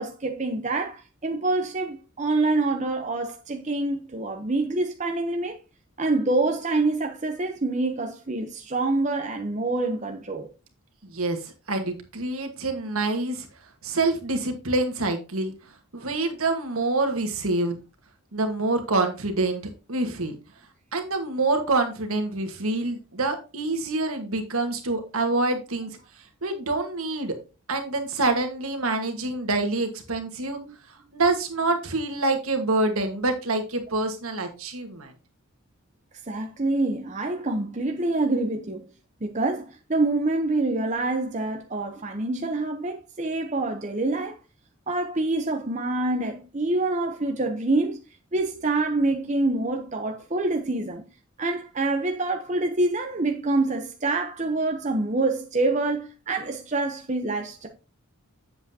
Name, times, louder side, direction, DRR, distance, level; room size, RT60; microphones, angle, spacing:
voice 1, 0.0-5.6 6.0-10.5 30.6-30.7 36.3-38.9 39.2-44.4 44.9-48.0 48.3-51.0 51.4-57.7, right 2 dB, 35° right, 0.8 m, -26 dB
voice 2, 11.1-13.5 13.8-15.5 15.9-17.8 18.3-19.6 19.9-20.4 20.9-25.9 26.4-27.4 27.7-30.6 31.1-35.1, right 2 dB, 75° right, 1.6 m, -26 dB
7.7 x 7.6 x 2.8 m
head